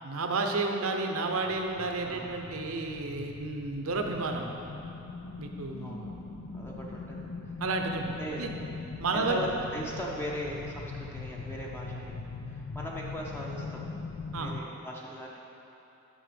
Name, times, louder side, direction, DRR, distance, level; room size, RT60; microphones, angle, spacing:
voice 1, 0.0-4.6 5.4-5.9 7.6-8.5 9.0-9.4 14.3-14.6, right 3 dB, 75° right, 3 dB, 0.8 m, -31 dB
sound 1, 1.3-14.6, left 4 dB, 70° left, 0.4 m, -41 dB
voice 2, 2.0-2.5 5.7-6.1 6.5-7.3 8.2-8.6 9.1-13.8 14.4-15.4, equal, 10° left, -3 dB, 0.7 m, -39 dB
6.3 x 6.1 x 6.9 m, 3.0 s
head